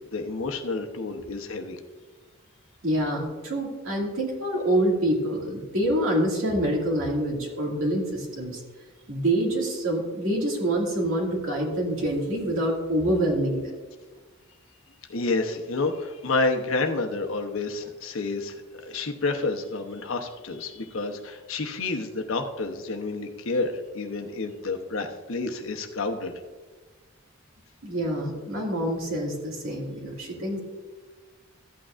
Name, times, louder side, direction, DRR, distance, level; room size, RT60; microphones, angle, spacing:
voice 1, 0.0-1.8 15.1-26.3, left 3 dB, 75° left, 4 dB, 0.9 m, -29 dB
voice 2, 2.8-8.6 9.1-13.6 27.8-30.6, right 1 dB, 75° right, -1 dB, 2.3 m, -26 dB
13.5 x 8.7 x 2.5 m, 1.3 s
head